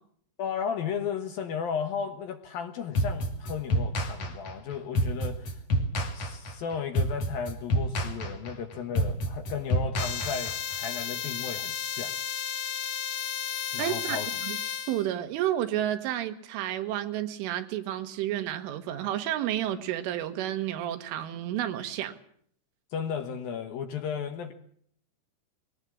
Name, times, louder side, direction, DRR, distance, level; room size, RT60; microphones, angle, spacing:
voice 1, 0.4-5.6 6.1-12.1 13.7-14.3 22.9-24.5, left 7 dB, 65° left, 8 dB, 2.6 m, -34 dB
sound 1, 2.9-10.8, equal, 40° left, 3.0 m, -28 dB
sound 2, 10.0-15.1, left 8 dB, 90° left, 4.8 m, -33 dB
voice 2, 13.8-14.2 14.4-14.6 14.9-22.1, right 12 dB, 85° right, 9 dB, 4.0 m, -31 dB
22.5 x 18.0 x 8.6 m, 0.63 s
omnidirectional pair, 5.6 m